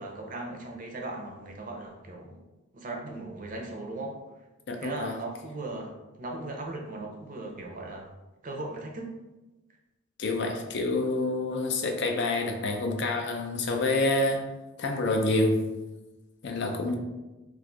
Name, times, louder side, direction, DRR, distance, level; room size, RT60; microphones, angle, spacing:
voice 1, 0.0-2.4 2.7-4.2 4.8-5.9 6.2-8.1 8.4-9.1 16.8-17.0, right 2 dB, 40° right, 0 dB, 0.5 m, -38 dB
voice 2, 4.7-5.1 10.2-14.5 14.8-15.7 16.4-17.0, left 2 dB, 55° left, 3 dB, 0.4 m, -27 dB
2.5 x 2.3 x 3.8 m, 1.1 s
head